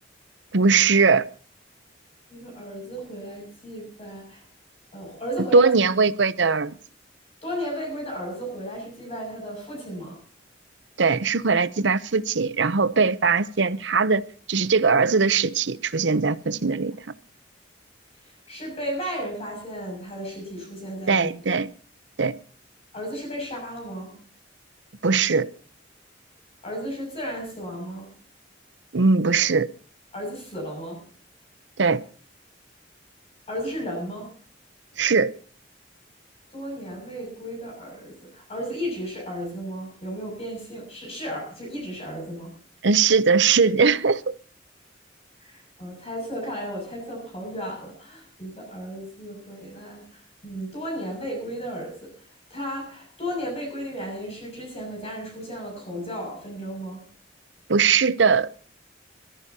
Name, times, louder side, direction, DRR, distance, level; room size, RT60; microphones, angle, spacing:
voice 1, 0.5-1.3 5.5-6.7 11.0-14.2 14.5-17.0 21.1-21.7 22.2-22.4 25.0-25.5 28.9-29.7 31.8-32.0 35.0-35.3 42.8-44.3 57.7-58.5, right 5 dB, 70° right, 0.8 m, -20 dB
voice 2, 2.3-4.4 4.9-5.6 7.4-10.2 18.5-21.3 22.9-24.1 26.6-28.1 30.1-31.0 33.5-34.3 36.5-42.6 45.4-52.1 52.5-57.0, equal, 35° left, 6.8 m, -34 dB
26.0 x 13.5 x 2.9 m
head